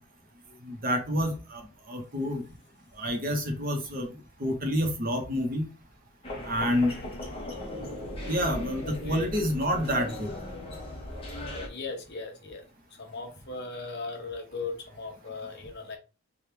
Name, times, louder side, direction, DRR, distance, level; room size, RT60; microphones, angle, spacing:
voice 1, 0.7-1.6 1.9-2.4 3.0-4.1 4.4-5.7 6.5-6.9 8.3-10.4, equal, 40° right, 0.9 m, -28 dB
sound 1, 6.2-11.7, left 1 dB, 25° left, 0.9 m, -38 dB
voice 2, 6.6-7.1 8.8-9.4 11.4-16.0, left 3 dB, 50° left, 0.9 m, -38 dB
3.4 x 2.4 x 4.4 m
head